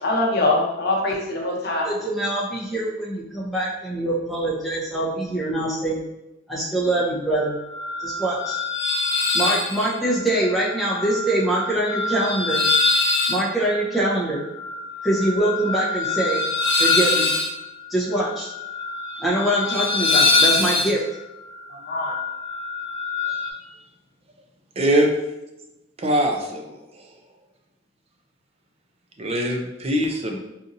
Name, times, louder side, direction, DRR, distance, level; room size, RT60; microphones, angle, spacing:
voice 1, 0.0-1.9 21.9-22.1, left 2 dB, 55° left, -1 dB, 0.7 m, -23 dB
voice 2, 1.8-6.0 6.5-7.5 8.0-8.6 9.3-12.6 13.3-14.4 15.0-16.4 16.8-17.3 17.9-18.5 19.2-21.0, right 1 dB, ahead, -7 dB, 0.8 m, -24 dB
sound 1, 7.3-23.5, left 3 dB, 85° left, 0.9 m, -24 dB
voice 3, 24.8-25.1 26.0-26.8 29.2-30.4, right 1 dB, 30° right, 2 dB, 0.4 m, -22 dB
4.1 x 2.6 x 2.6 m, 0.96 s
head